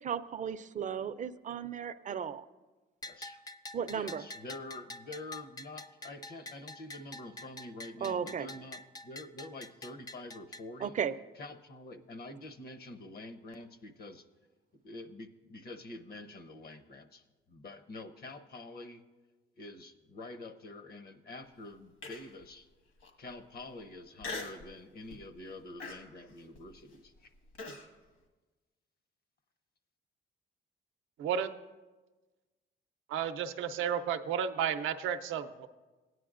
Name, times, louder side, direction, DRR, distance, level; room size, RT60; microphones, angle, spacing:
voice 1, 0.0-2.4 3.7-4.2 8.0-8.5 10.8-11.1, right 7 dB, 40° right, 12 dB, 0.5 m, -35 dB
Bell, 3.0-10.6, left 2 dB, 20° left, 0.4 m, -47 dB
voice 2, 3.1-3.4 3.9-10.9 11.3-14.3 14.8-19.0 19.6-22.7 23.2-27.3, left 2 dB, 50° left, 9 dB, 0.8 m, -47 dB
Human voice, 22.0-22.5 23.0-23.1 24.2-24.7 25.1-25.4 25.8-27.9, left 3 dB, 70° left, 1.7 m, -42 dB
voice 3, 33.1-35.7, right 8 dB, 85° right, 9 dB, 0.6 m, -32 dB
17.0 x 9.4 x 2.5 m, 1.2 s
cardioid pair, 90°, 20 cm